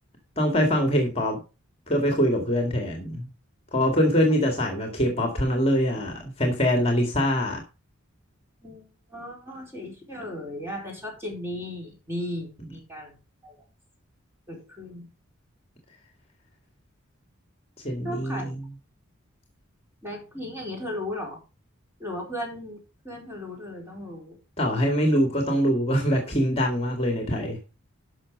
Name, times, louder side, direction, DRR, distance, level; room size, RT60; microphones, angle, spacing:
voice 1, 0.4-1.4 1.9-3.3 3.7-7.6 17.8-18.6 24.6-27.6, equal, 25° left, 3 dB, 2.0 m, -23 dB
voice 2, 8.6-13.2 13.4-13.6 14.5-15.1 18.0-18.5 20.0-21.4 22.0-22.8 23.0-24.4, left 1 dB, 10° right, -1 dB, 4.5 m, -36 dB
12.0 x 6.2 x 5.2 m, 0.31 s
head